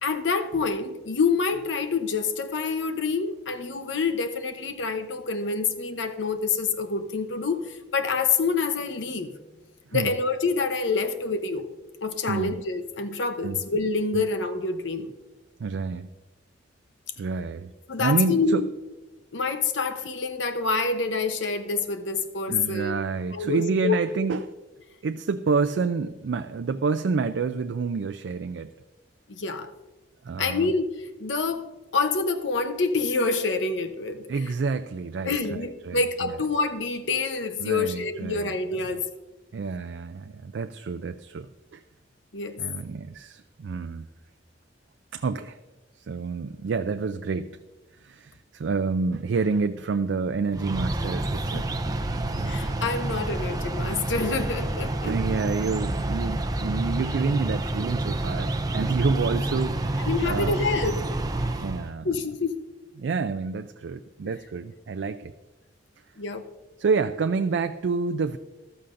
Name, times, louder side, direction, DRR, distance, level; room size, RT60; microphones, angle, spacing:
voice 1, 0.0-9.3 9.9-11.7 12.0-15.1 17.9-18.7 19.3-23.0 23.3-24.0 29.3-29.7 30.4-31.7 31.9-34.3 35.2-39.0 42.3-42.6 51.5-51.6 52.4-55.1 60.0-61.0 62.0-62.5 66.2-66.4, left 4 dB, 80° left, 8 dB, 0.9 m, -27 dB
voice 2, 12.3-12.6 13.4-13.6 14.1-14.3 15.6-16.1 17.2-17.7 18.0-18.6 22.5-24.5 25.0-28.7 30.2-30.7 34.3-36.4 37.6-38.8 39.5-41.8 42.6-44.1 45.1-45.6 46.0-47.5 48.0-51.7 52.1-52.6 55.0-60.6 61.6-62.1 63.0-65.3 66.8-68.4, right 4 dB, 75° right, 8 dB, 0.4 m, -28 dB
sound 1, 50.5-61.9, right 1 dB, 20° right, 0.6 m, -28 dB
14.0 x 12.5 x 2.6 m, 1.1 s
head